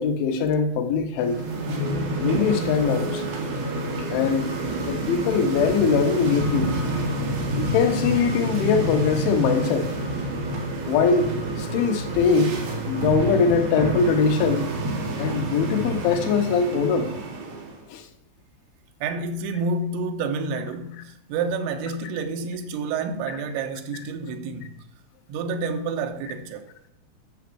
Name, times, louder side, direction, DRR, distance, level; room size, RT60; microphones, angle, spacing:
voice 1, 0.0-1.4 2.2-3.2 4.1-4.5 4.9-6.7 7.6-9.9 10.9-11.3 11.6-12.6 12.9-14.8 15.2-17.1 17.9-18.1 23.3-23.4, left 5 dB, 85° left, 3.4 m, -22 dB
sound 1, 1.2-17.8, right 1 dB, 60° right, 3.5 m, -28 dB
voice 2, 19.0-24.8 25.3-26.7, right 4 dB, 80° right, 3.3 m, -29 dB
10.5 x 7.2 x 6.1 m
omnidirectional pair, 5.3 m